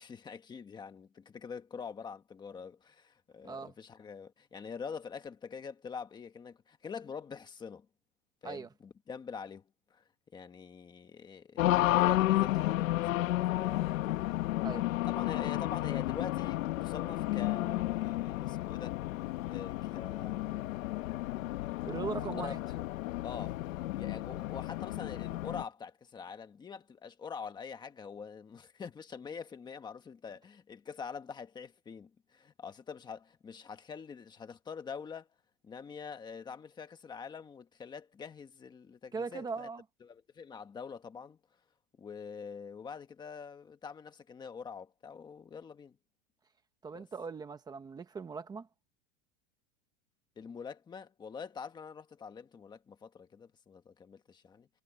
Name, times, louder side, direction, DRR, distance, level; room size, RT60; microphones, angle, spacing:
voice 1, 0.0-7.9 8.4-9.6 9.9-10.0 10.3-14.6 15.0-19.0 19.5-20.7 22.2-22.5 23.2-35.3 35.6-39.7 40.0-41.4 42.0-46.0 46.9-47.1 50.4-54.7, left 6 dB, 10° left, 1.3 m, -45 dB
Race car auto racing, 11.6-25.6, left 16 dB, 85° left, 1.6 m, -32 dB
voice 2, 21.8-22.6 39.1-39.8 46.8-48.7, right 5 dB, 10° right, 1.1 m, -39 dB
supercardioid pair, 175°, 39 cm